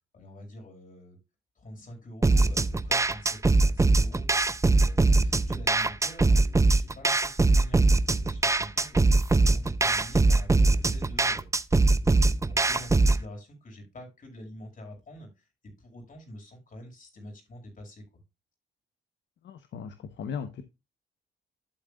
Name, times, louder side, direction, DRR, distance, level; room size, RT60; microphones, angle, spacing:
voice 1, 0.1-1.2 1.6-4.3 4.7-11.5 11.9-18.2, left 1 dB, 45° left, 6.1 m, -46 dB
sound 1, 2.2-13.2, right 3 dB, 15° right, 0.6 m, -22 dB
voice 2, 19.4-20.6, left 6 dB, 65° left, 1.0 m, -37 dB
12.0 x 7.6 x 2.4 m
cardioid pair, 90°, 20 cm